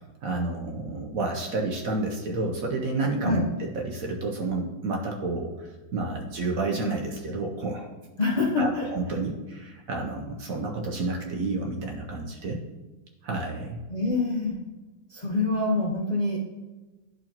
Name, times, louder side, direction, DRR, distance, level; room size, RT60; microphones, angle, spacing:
voice 1, 0.2-7.9 8.6-12.6 13.2-13.8, right 3 dB, 60° right, 0 dB, 0.9 m, -30 dB
voice 2, 8.2-8.9 13.9-14.6 15.1-16.4, left 3 dB, 70° left, -4 dB, 0.4 m, -25 dB
11.0 x 4.1 x 2.9 m, 1.2 s
omnidirectional pair, 2.1 m